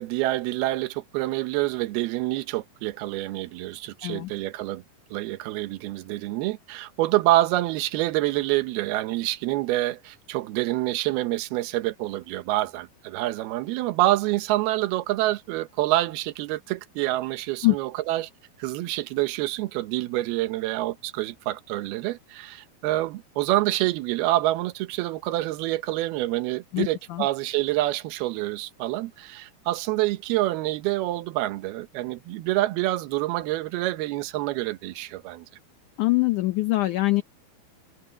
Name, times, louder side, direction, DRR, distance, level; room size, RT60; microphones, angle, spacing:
voice 1, 0.0-4.8 5.1-18.3 18.6-35.5, right 16 dB, 80° right, 2.9 m, -27 dB
voice 2, 26.7-27.3 36.0-37.2, left 19 dB, 70° left, 2.0 m, -23 dB
omnidirectional pair, 4.4 m